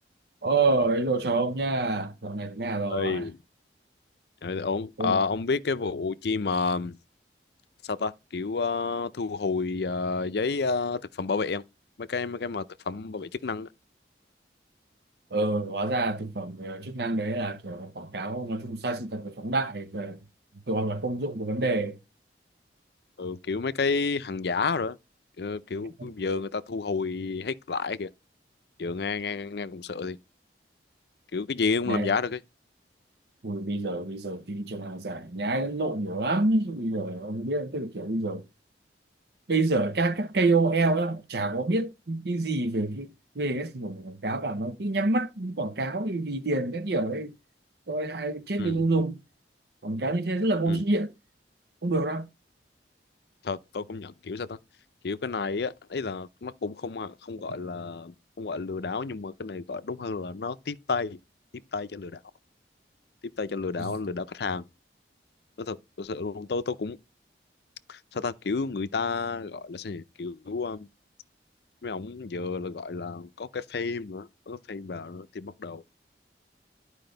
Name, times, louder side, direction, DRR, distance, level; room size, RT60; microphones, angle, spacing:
voice 1, 0.4-3.2 5.0-5.2 15.3-20.2 20.7-22.0 26.0-26.1 31.9-32.1 33.4-38.4 39.5-47.3 47.9-49.2 49.8-51.1 51.8-52.3 63.8-63.9, right 2 dB, 65° right, 0.9 m, -28 dB
voice 2, 2.9-3.4 4.4-7.0 7.8-11.6 12.0-13.7 23.2-25.0 25.4-28.1 28.8-30.2 31.3-32.4 48.6-48.8 50.7-50.8 53.4-54.6 55.0-61.2 61.7-62.2 63.4-64.7 65.6-67.0 67.9-70.9 71.8-75.8, left 4 dB, 65° left, 0.5 m, -31 dB
11.5 x 4.9 x 3.9 m
head